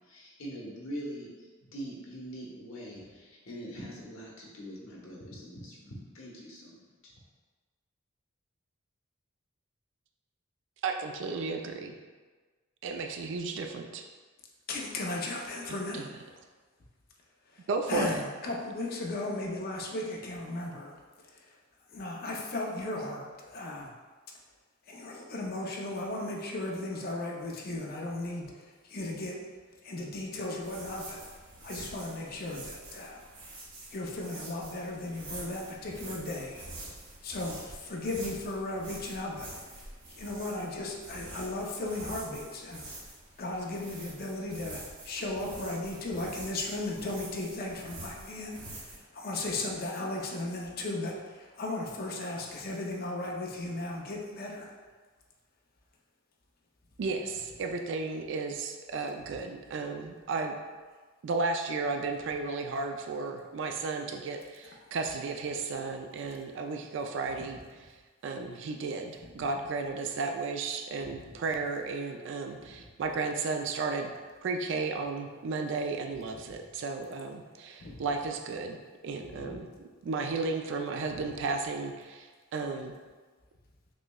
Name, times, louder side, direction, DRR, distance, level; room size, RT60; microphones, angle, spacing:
voice 1, 0.0-6.8 7.0-7.1, equal, 75° left, -3 dB, 0.9 m, -43 dB
voice 2, 10.8-11.9 12.8-14.0 15.7-16.0 17.7-18.2 57.0-60.6 61.2-67.9 68.2-74.1 74.4-79.7 80.0-82.3 82.5-82.9, right 4 dB, 60° right, 5 dB, 0.3 m, -34 dB
voice 3, 14.7-16.1 17.9-21.0 21.3-21.4 21.9-23.9 24.9-29.4 29.8-31.2 31.6-33.2 33.9-36.6 37.2-42.8 43.4-54.7 76.3-76.4 77.8-78.1 79.2-79.6 81.2-81.3, left 2 dB, 45° left, -1 dB, 0.5 m, -36 dB
sound 1, 30.6-49.0, right 2 dB, 85° right, 1.1 m, -46 dB
6.0 x 2.1 x 2.2 m, 1.4 s
head